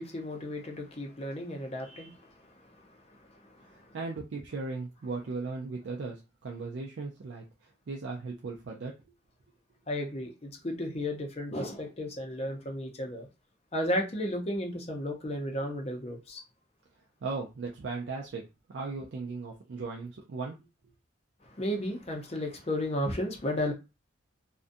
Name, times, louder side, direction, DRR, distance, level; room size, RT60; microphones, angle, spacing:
voice 1, 0.0-3.9 9.9-13.3 13.7-16.4 21.4-23.7, left 1 dB, 30° left, 0.5 m, -34 dB
voice 2, 3.6-8.9 17.2-18.4 18.7-20.6, right 3 dB, 65° right, 0.4 m, -37 dB
2.5 x 2.1 x 2.5 m
head